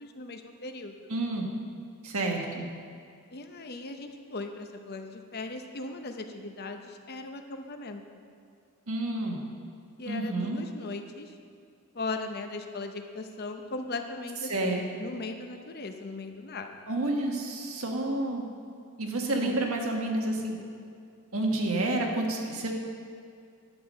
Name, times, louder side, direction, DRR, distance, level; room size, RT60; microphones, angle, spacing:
voice 1, 0.0-1.1 3.3-8.2 10.0-11.3 11.9-16.8 19.4-19.7, left 3 dB, 45° left, 6 dB, 0.8 m, -38 dB
voice 2, 1.1-1.5 2.0-2.6 8.9-9.4 10.0-10.6 14.5-14.8 16.9-18.4 19.0-20.6 21.3-22.7, right 2 dB, 75° right, 1 dB, 1.5 m, -29 dB
10.5 x 7.9 x 5.4 m, 2.3 s
head